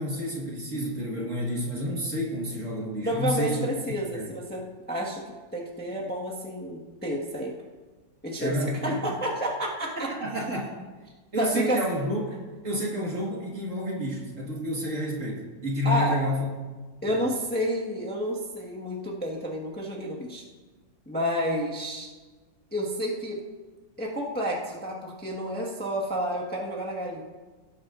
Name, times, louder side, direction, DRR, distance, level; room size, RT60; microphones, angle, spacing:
voice 1, 0.0-3.6 4.1-4.3 8.4-9.0 10.0-10.7 11.3-12.3 12.6-16.5 17.1-17.2, equal, 40° right, -3 dB, 2.1 m, -30 dB
voice 2, 3.0-5.2 5.5-7.5 8.2-8.6 8.8-10.1 11.4-11.8 15.8-16.2 17.0-20.4 21.0-22.1 22.7-23.4 24.0-27.2, equal, 5° left, -4 dB, 1.3 m, -30 dB
18.0 x 8.8 x 2.6 m, 1.3 s
omnidirectional pair, 2.1 m